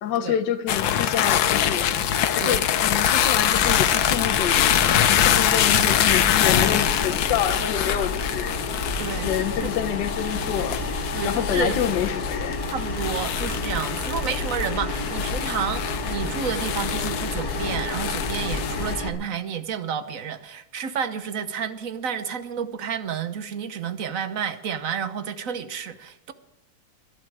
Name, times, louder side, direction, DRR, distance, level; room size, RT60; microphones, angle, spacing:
voice 1, 0.0-2.1 2.4-4.6 5.1-8.6 9.2-10.8 11.2-12.6, left 10 dB, 70° left, 1.4 m, -27 dB
sound 1, 0.7-18.9, left 10 dB, 85° left, 1.6 m, -24 dB
sound 2, 1.5-19.1, left 3 dB, 55° left, 2.4 m, -30 dB
voice 2, 9.0-9.7 11.1-11.8 12.7-26.3, right 7 dB, 55° right, 1.2 m, -30 dB
21.5 x 11.5 x 4.8 m
omnidirectional pair, 2.0 m